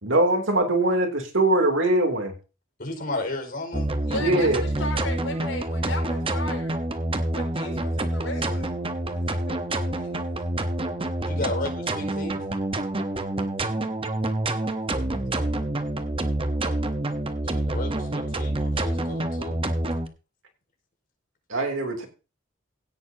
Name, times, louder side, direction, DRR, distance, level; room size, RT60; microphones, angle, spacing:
voice 1, 0.0-2.3 4.2-4.6 21.5-22.1, right 1 dB, 70° right, 4 dB, 3.0 m, -22 dB
voice 2, 2.8-3.9 11.2-12.4 17.4-19.6, left 2 dB, 50° left, 3 dB, 5.0 m, -33 dB
sound 1, 3.7-20.1, right 1 dB, 25° right, 1.1 m, -27 dB
voice 3, 4.0-6.8 7.3-8.7 9.1-10.4 13.1-13.5 14.6-15.5, left 2 dB, 75° left, 3 dB, 5.8 m, -37 dB
17.0 x 9.4 x 2.8 m, 0.32 s
head